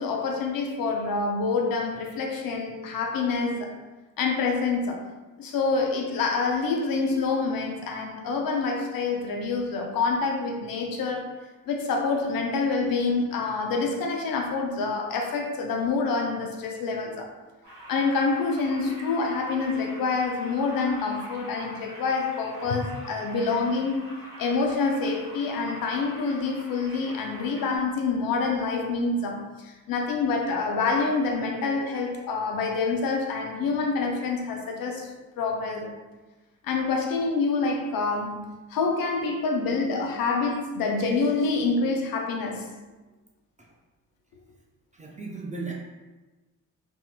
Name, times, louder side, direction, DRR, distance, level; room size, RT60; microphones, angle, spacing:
voice 1, 0.0-3.7 4.2-5.0 5.4-11.2 11.7-17.3 17.9-24.0 24.4-35.1 35.4-36.0 36.6-42.7, left 4 dB, 50° left, 2 dB, 0.6 m, -27 dB
sound 1, 17.6-27.8, equal, 85° right, 1.4 m, -45 dB
voice 2, 44.9-45.7, right 3 dB, 15° right, -2 dB, 0.5 m, -36 dB
3.4 x 2.7 x 2.4 m, 1.2 s
hypercardioid pair, 45°, 45 cm